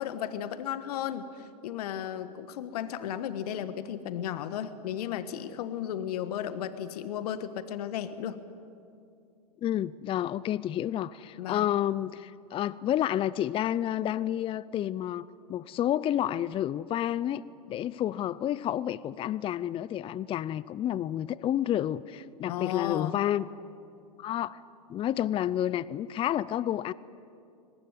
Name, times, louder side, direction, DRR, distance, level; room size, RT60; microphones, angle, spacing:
voice 1, 0.0-8.4 11.4-11.7 22.5-23.2, left 10 dB, 65° left, 11 dB, 1.5 m, -34 dB
voice 2, 9.6-17.4 17.7-23.4 24.2-24.6 24.9-26.9, left 11 dB, 25° left, 19 dB, 0.5 m, -30 dB
23.5 x 19.5 x 9.8 m, 2.5 s
hypercardioid pair, 100°, 21 cm